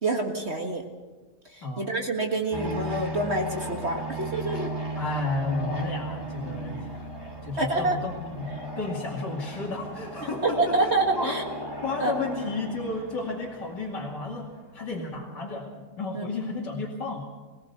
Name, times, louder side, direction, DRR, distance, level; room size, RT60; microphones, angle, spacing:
voice 1, 0.0-0.8 1.8-4.7 7.6-8.0 10.4-11.4 12.0-12.1 16.2-16.3, right 2 dB, 40° right, 2 dB, 1.9 m, -26 dB
sound 1, 2.5-14.6, right 1 dB, 15° right, 3.2 m, -36 dB
voice 2, 5.0-7.1 7.4-11.4 11.8-17.4, left 3 dB, 75° left, -5 dB, 3.2 m, -33 dB
23.5 x 17.5 x 6.9 m, 1.3 s
omnidirectional pair, 1.9 m